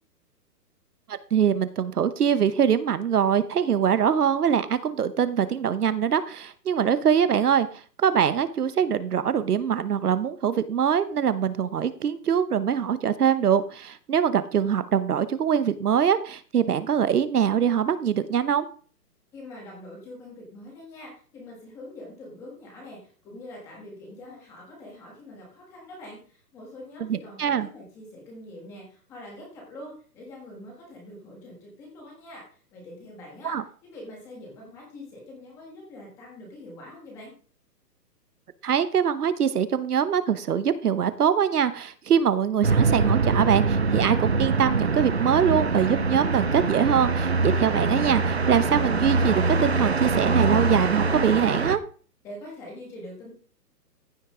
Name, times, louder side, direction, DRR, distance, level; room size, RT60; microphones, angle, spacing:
voice 1, 1.1-18.7 27.1-27.7 33.4-33.6 38.6-51.8, right 8 dB, 65° right, 14 dB, 1.0 m, -23 dB
voice 2, 19.3-33.6 33.8-37.3 52.2-53.3, left 1 dB, 5° left, -2 dB, 1.4 m, -44 dB
sound 1, 42.6-51.8, right 4 dB, 45° right, 0.4 m, -24 dB
15.0 x 5.9 x 3.7 m, 0.41 s
hypercardioid pair, 180°, 49 cm